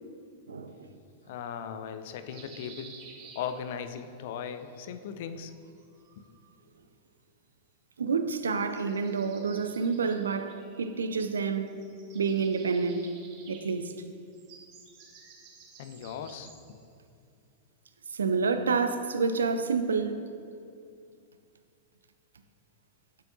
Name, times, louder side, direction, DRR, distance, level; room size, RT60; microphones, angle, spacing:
voice 1, 0.5-0.9 8.0-11.7 12.1-13.1 13.5-13.9 18.1-20.2, right 5 dB, 75° right, 0.4 m, -28 dB
voice 2, 1.3-3.0 3.3-5.5 6.2-6.3 15.8-16.8, left 7 dB, 55° left, 0.4 m, -38 dB
sound 1, 2.3-4.0 5.4-6.5 8.4-11.4 11.7-16.8, right 5 dB, 45° right, 1.1 m, -53 dB
8.4 x 6.9 x 2.6 m
figure-of-eight pair, 95°, 0 cm